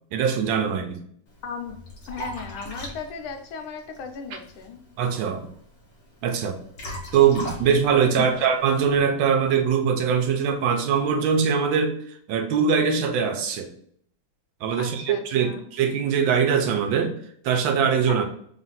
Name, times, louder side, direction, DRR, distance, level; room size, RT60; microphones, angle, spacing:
voice 1, 0.1-1.0 5.0-5.5 6.2-6.6 7.1-12.0 12.3-13.7 14.6-17.1 17.4-18.2, right 7 dB, 80° right, 5 dB, 1.4 m, -22 dB
Liquid, 1.3-9.0, equal, 55° left, 1.5 m, -40 dB
voice 2, 1.4-1.8 2.1-4.8 8.2-8.3 14.7-15.6 18.1-18.2, left 6 dB, 85° left, 5 dB, 1.5 m, -36 dB
3.7 x 2.5 x 4.0 m, 0.64 s
omnidirectional pair, 2.2 m